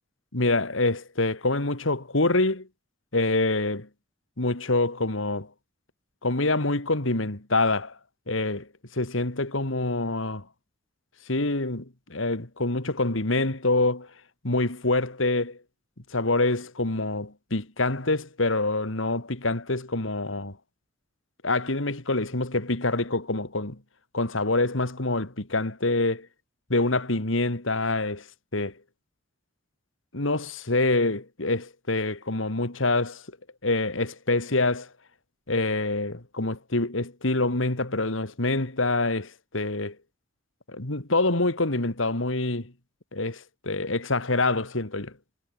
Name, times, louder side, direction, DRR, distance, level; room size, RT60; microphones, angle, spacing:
voice 1, 0.3-2.7 3.1-3.9 4.4-5.5 6.2-7.9 8.3-10.4 11.3-14.1 14.4-15.6 16.1-20.6 21.4-23.8 24.1-26.3 26.7-28.2 28.5-28.7 30.1-33.2 33.6-34.9 35.5-40.0 40.7-42.7 43.1-45.1, left 2 dB, 80° left, 2.7 m, -26 dB
head